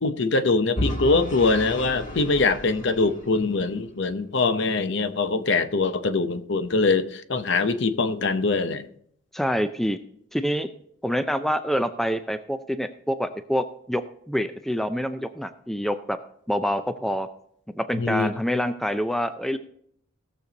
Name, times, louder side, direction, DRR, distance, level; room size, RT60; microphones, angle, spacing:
voice 1, 0.0-8.9 17.9-18.3, left 3 dB, 60° left, 0.7 m, -23 dB
Vehicle / Engine, 0.8-3.8, left 1 dB, 40° left, 1.7 m, -33 dB
voice 2, 9.3-10.0 10.3-10.7 11.0-14.0 14.3-16.2 16.5-17.3 17.7-19.6, equal, ahead, 0.3 m, -26 dB
17.0 x 6.8 x 3.9 m
head